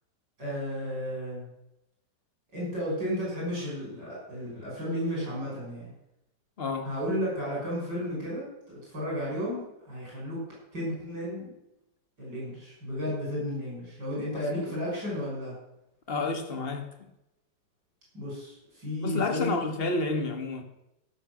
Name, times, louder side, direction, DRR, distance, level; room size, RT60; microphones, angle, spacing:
voice 1, 0.4-1.5 2.5-5.9 6.8-10.4 10.7-11.5 12.2-15.5 18.1-19.6, equal, 70° right, 6.7 m, -33 dB
voice 2, 6.6-6.9 14.3-14.7 16.1-16.9 19.0-20.6, left 3 dB, 35° left, 1.4 m, -30 dB
15.0 x 7.1 x 6.2 m
omnidirectional pair, 1.9 m